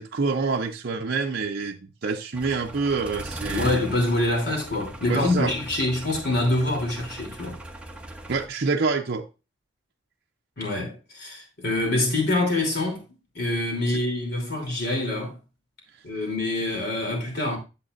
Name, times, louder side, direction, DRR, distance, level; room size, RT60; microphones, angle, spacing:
voice 1, 0.0-3.8 5.1-5.5 8.3-9.3 13.9-14.0, right 4 dB, 55° right, 0.6 m, -27 dB
sound 1, 2.3-8.5, right 1 dB, 5° right, 0.9 m, -38 dB
voice 2, 3.5-7.6 10.6-13.0 13.3-15.4 16.0-17.6, left 2 dB, 55° left, 3.1 m, -25 dB
8.7 x 7.5 x 2.5 m
head